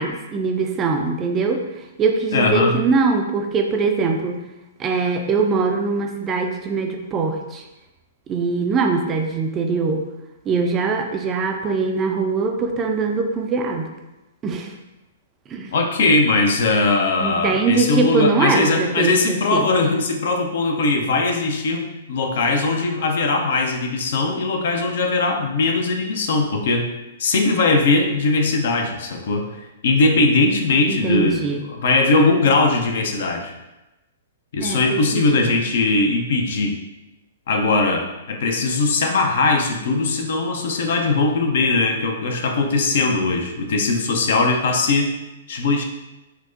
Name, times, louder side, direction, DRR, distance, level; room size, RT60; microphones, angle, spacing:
voice 1, 0.0-1.6 2.0-4.4 4.8-7.6 8.3-10.1 10.5-13.9 14.4-14.7 15.5-15.7 17.2-19.7 30.9-31.6 34.6-35.5, right 4 dB, 25° right, 3 dB, 0.4 m, -22 dB
voice 2, 2.3-2.7 15.7-26.9 27.2-33.5 34.5-36.8 37.5-45.1 45.5-45.8, left 3 dB, 60° left, 3 dB, 0.4 m, -20 dB
4.4 x 2.0 x 2.5 m, 0.99 s
figure-of-eight pair, 115°, 0 cm